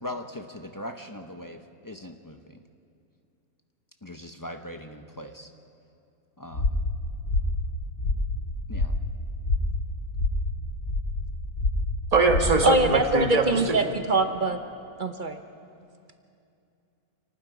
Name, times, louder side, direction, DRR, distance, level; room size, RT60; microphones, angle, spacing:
voice 1, 0.0-2.6 4.0-5.5 6.4-6.8 8.7-8.9, left 1 dB, 25° left, 5 dB, 0.4 m, -40 dB
sound 1, 6.5-12.9, left 2 dB, 60° left, 2.9 m, -28 dB
voice 2, 12.1-13.7, right 3 dB, 25° right, 3 dB, 1.4 m, -22 dB
voice 3, 12.6-14.6 15.0-15.4, right 2 dB, 45° right, 7 dB, 0.7 m, -23 dB
28.0 x 19.0 x 5.0 m, 2.5 s
omnidirectional pair, 1.6 m